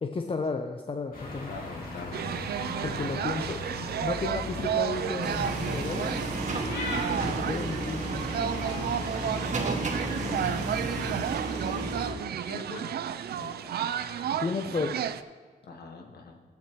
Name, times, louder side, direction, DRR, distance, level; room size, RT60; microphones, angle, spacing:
voice 1, 0.0-1.5 2.8-6.7 7.2-8.3 14.4-15.1, left 4 dB, 35° left, 6 dB, 0.7 m, -33 dB
sound 1, 1.1-10.0, left 2 dB, 60° left, 2.3 m, -39 dB
voice 2, 1.5-2.2 9.0-9.5 10.0-13.7 15.6-16.4, left 3 dB, 80° left, 3 dB, 1.3 m, -43 dB
sound 2, 2.1-15.2, right 9 dB, 80° right, 0.4 m, -32 dB
sound 3, 5.2-12.1, right 2 dB, 50° right, 1.9 m, -33 dB
14.0 x 9.1 x 3.0 m, 1.5 s
cardioid pair, 75°, 16 cm